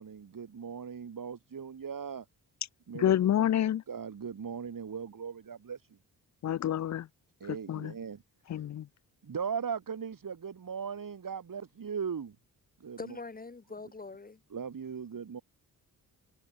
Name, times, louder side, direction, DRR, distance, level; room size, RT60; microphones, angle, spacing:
voice 1, 0.0-2.3 2.9-3.1 3.4-3.5 3.9-5.9 7.4-8.2 9.2-12.4 12.8-13.2 14.5-15.4, right 6 dB, 45° right, 2.1 m, -38 dB
voice 2, 2.9-3.8 6.4-7.1 7.5-7.9 8.5-8.9, left 11 dB, 40° left, 0.5 m, -28 dB
voice 3, 13.0-14.4, left 3 dB, 20° left, 1.0 m, -43 dB
supercardioid pair, 45°, 45 cm